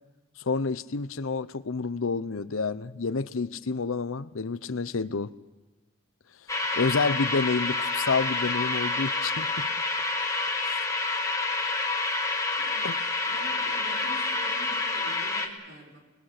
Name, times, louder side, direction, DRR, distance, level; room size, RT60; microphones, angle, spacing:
voice 1, 0.4-5.3 6.7-9.7 10.6-10.8 12.8-12.9, left 4 dB, 80° left, 15 dB, 0.7 m, -29 dB
sound 1, 6.5-15.5, left 3 dB, 15° left, 1.8 m, -28 dB
voice 2, 12.6-12.9 13.3-16.0, right 1 dB, 70° right, 1 dB, 5.0 m, -46 dB
28.0 x 20.5 x 6.6 m, 1.2 s
head